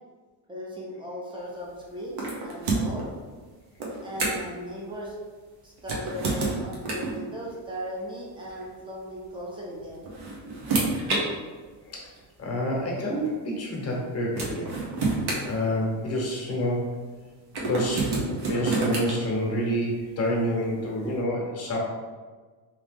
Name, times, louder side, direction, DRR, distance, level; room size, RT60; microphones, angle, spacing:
voice 1, 0.5-3.1 4.0-5.1 5.6-10.0, equal, 10° right, -4 dB, 0.7 m, -37 dB
sound 1, 2.2-3.1 3.8-4.6 5.8-7.2 8.5-8.6 9.8-11.2 12.2-12.3 13.9-14.0 14.4-16.2 17.5-19.1, right 3 dB, 55° right, 1.0 m, -28 dB
voice 2, 12.4-14.7 15.4-16.9 17.6-18.1 18.5-21.8, equal, 30° left, -2 dB, 1.0 m, -28 dB
3.1 x 2.9 x 3.5 m, 1.4 s
cardioid pair, 145°, 48 cm